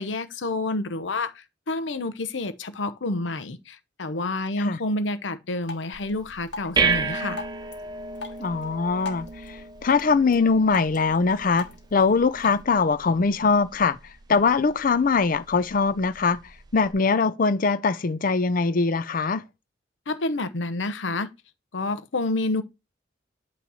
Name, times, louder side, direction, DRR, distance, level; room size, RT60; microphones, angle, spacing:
voice 1, 0.0-7.4 20.1-21.3 21.7-22.6, left 2 dB, 90° left, 0.8 m, -29 dB
Drip, 5.6-12.6, left 3 dB, 75° left, 1.4 m, -42 dB
sound 1, 5.9-16.9, right 5 dB, 25° right, 0.6 m, -33 dB
voice 2, 8.4-14.0 14.3-16.4 16.7-19.4, left 4 dB, 50° left, 0.5 m, -22 dB
8.6 x 3.1 x 5.6 m
head